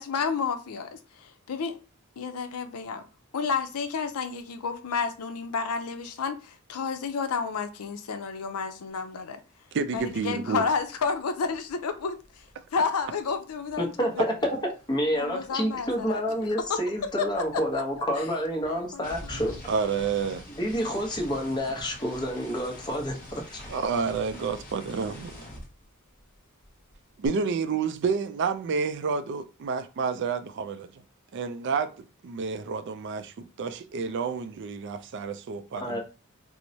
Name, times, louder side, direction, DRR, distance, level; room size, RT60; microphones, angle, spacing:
voice 1, 0.0-1.8 2.2-3.1 3.3-9.4 9.9-12.5 12.7-14.2 15.1-16.2 16.7-16.8 17.2-17.8 18.1-18.3 18.6-19.6, left 5 dB, 85° left, 0.5 m, -31 dB
voice 2, 9.7-10.6 19.7-20.4 23.7-25.4 27.2-30.9 31.3-36.0, right 5 dB, 55° right, 0.3 m, -29 dB
sound 1, 10.0-10.2 10.4-14.8 15.1-26.4 26.6-27.3, left 1 dB, 40° left, 1.0 m, -46 dB
voice 3, 13.8-14.5 14.9-19.5 20.5-23.6 35.8-36.0, equal, 20° left, 0.8 m, -29 dB
4.4 x 2.0 x 2.7 m
head